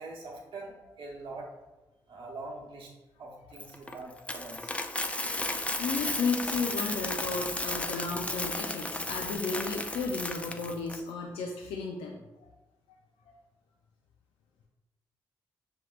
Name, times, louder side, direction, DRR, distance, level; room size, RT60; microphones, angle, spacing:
voice 1, 0.0-1.5 2.1-2.9 3.2-4.7, right 3 dB, 65° right, -3 dB, 1.0 m, -43 dB
voice 2, 3.5-3.9 5.8-12.2 13.3-13.4, left 4 dB, 90° left, 1 dB, 0.4 m, -34 dB
Coin (dropping), 3.6-11.0, left 2 dB, 15° left, 0.4 m, -34 dB
5.8 x 3.1 x 2.4 m, 1.0 s
supercardioid pair, 45°, 9 cm